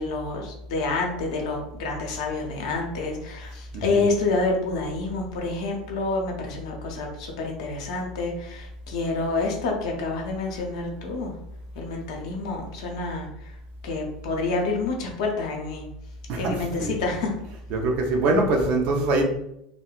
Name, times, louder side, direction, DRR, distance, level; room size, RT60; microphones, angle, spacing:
voice 1, 0.0-11.4 11.7-13.5 13.8-15.9 16.4-17.3, left 3 dB, 55° left, 1 dB, 0.6 m, -28 dB
voice 2, 17.7-19.2, right 2 dB, 45° right, 2 dB, 0.5 m, -22 dB
2.7 x 2.1 x 2.3 m, 0.79 s
figure-of-eight pair, 80°, 4 cm